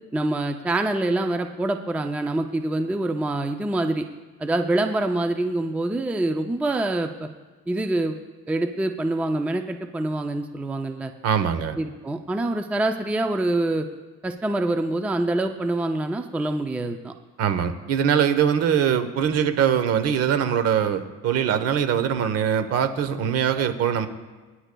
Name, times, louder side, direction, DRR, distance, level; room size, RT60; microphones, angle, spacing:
voice 1, 0.1-4.1 4.4-7.3 7.7-8.2 8.5-11.1 11.8-13.9 14.2-17.1, right 2 dB, 5° right, 6 dB, 0.4 m, -25 dB
voice 2, 11.2-11.8 17.4-24.1, right 8 dB, 55° right, 11 dB, 1.0 m, -22 dB
21.5 x 10.0 x 2.3 m, 1.3 s
cardioid pair, 140°, 29 cm